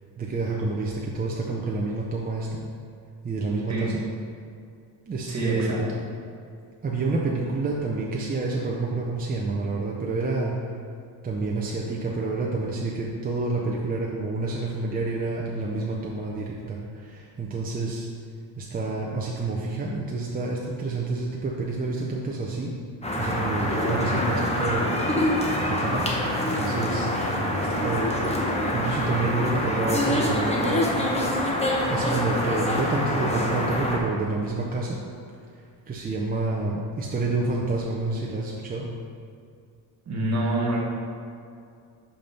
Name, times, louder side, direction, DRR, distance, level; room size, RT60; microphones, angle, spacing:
voice 1, 0.2-2.6 3.2-4.0 5.1-5.7 6.8-10.5 11.2-18.1 18.6-22.7 23.2-24.9 25.7-26.1 26.4-27.1 27.8-28.1 28.5-30.9 31.9-35.0 35.9-38.9, right 3 dB, 20° right, -3 dB, 0.5 m, -28 dB
voice 2, 5.2-6.0 27.2-27.5 40.0-40.8, right 1 dB, 35° right, -3 dB, 1.6 m, -27 dB
sound 1, 23.0-34.0, left 1 dB, 15° left, 0.8 m, -25 dB
5.6 x 5.4 x 5.3 m, 2.4 s
cardioid pair, 145°, 47 cm